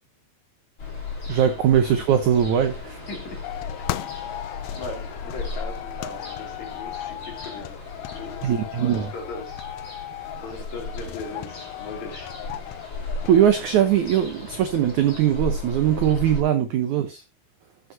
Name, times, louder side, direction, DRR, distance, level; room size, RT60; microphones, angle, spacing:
Ocean, 0.8-16.4, left 2 dB, 30° left, 3.5 m, -36 dB
voice 1, 1.3-3.0 8.4-9.1 13.3-17.2, right 9 dB, 80° right, 1.7 m, -21 dB
voice 2, 3.1-3.4 4.1-4.2 4.7-10.0 10.4-12.3 12.7-12.8 16.6-16.7, left 3 dB, 45° left, 3.8 m, -39 dB
sound 1, 3.4-13.5, left 14 dB, 80° left, 2.4 m, -36 dB
14.0 x 8.0 x 2.7 m
omnidirectional pair, 4.8 m